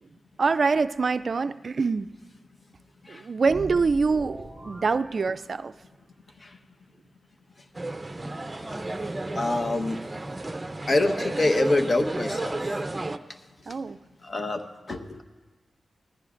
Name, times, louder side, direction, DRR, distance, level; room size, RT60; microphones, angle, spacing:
voice 1, 0.4-2.1 3.1-5.7 13.7-14.0, right 4 dB, 60° right, 13 dB, 0.3 m, -25 dB
sound 1, 3.4-6.0, right 1 dB, 5° left, 2.0 m, -42 dB
sound 2, 7.7-13.2, right 2 dB, 25° right, 0.6 m, -32 dB
voice 2, 9.3-10.0 10.9-12.6 14.2-14.6 14.9-15.2, left 2 dB, 45° left, 7 dB, 1.1 m, -25 dB
20.5 x 14.5 x 2.5 m, 1.3 s
cardioid pair, 50°, 0 cm